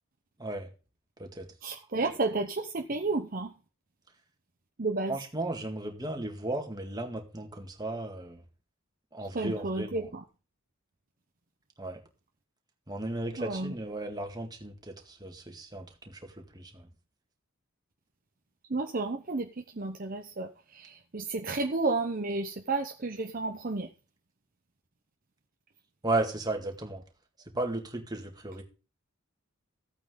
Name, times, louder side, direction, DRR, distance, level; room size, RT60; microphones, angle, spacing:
voice 1, 0.4-0.7 1.2-1.5 5.1-8.4 9.1-10.1 11.8-12.0 12.9-16.9 26.0-27.0 27.5-28.6, right 2 dB, 20° right, 3 dB, 2.1 m, -35 dB
voice 2, 1.6-3.5 4.8-5.2 9.3-10.2 13.4-13.7 18.7-23.9, right 3 dB, 45° right, 4 dB, 0.9 m, -32 dB
15.0 x 8.8 x 3.9 m, 0.34 s
head